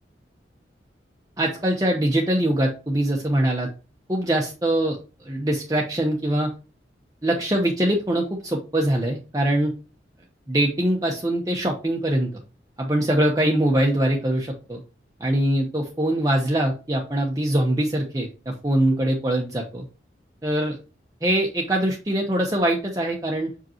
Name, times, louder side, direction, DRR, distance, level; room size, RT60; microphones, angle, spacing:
voice 1, 1.4-3.7 4.1-5.0 5.2-6.5 7.2-9.7 10.5-12.3 12.8-14.8 15.2-19.8 20.4-20.8 21.2-23.5, right 1 dB, 20° right, 0 dB, 1.0 m, -23 dB
6.8 x 5.2 x 2.9 m, 0.33 s
head